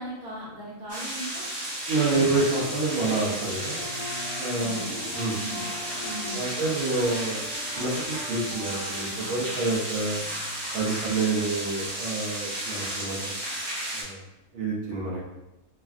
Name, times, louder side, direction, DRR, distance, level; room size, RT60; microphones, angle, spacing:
voice 1, 0.0-1.5 4.5-5.7 6.0-6.5, right 1 dB, 80° right, -6 dB, 1.4 m, -38 dB
sound 1, 0.9-14.0, right 1 dB, 25° right, 0.5 m, -33 dB
voice 2, 1.9-3.8 4.4-4.8 5.1-5.4 6.3-7.4 7.7-10.2 10.7-13.2 13.9-14.2 14.5-15.2, right 3 dB, 60° right, -4 dB, 0.9 m, -28 dB
Drum, 2.1-11.4, left 2 dB, 50° left, 1.2 m, -45 dB
sound 2, 2.3-9.8, left 2 dB, 85° left, 1.1 m, -42 dB
3.2 x 2.3 x 2.3 m, 0.96 s
omnidirectional pair, 1.6 m